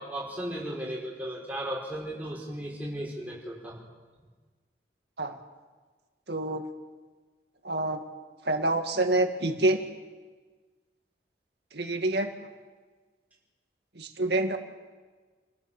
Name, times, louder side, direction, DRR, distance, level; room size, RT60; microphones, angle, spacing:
voice 1, 0.0-3.9, right 1 dB, 10° right, -4 dB, 6.0 m, -36 dB
voice 2, 6.3-6.7 7.6-8.0 8.5-9.8 11.7-12.3 14.0-14.6, right 2 dB, 70° right, 5 dB, 2.1 m, -27 dB
29.5 x 16.5 x 7.3 m, 1.4 s
head